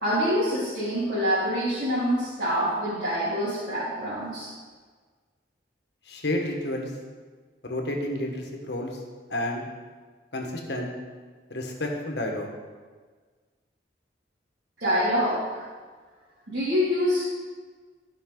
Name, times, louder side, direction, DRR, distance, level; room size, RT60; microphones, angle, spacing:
voice 1, 0.0-4.5 14.8-15.6 16.5-17.3, equal, 75° right, -12 dB, 3.1 m, -26 dB
voice 2, 6.0-6.9 7.6-9.0 9.3-9.7 10.3-10.9 11.5-12.5, left 1 dB, 65° left, 1 dB, 1.6 m, -30 dB
15.0 x 5.5 x 4.0 m, 1.5 s
head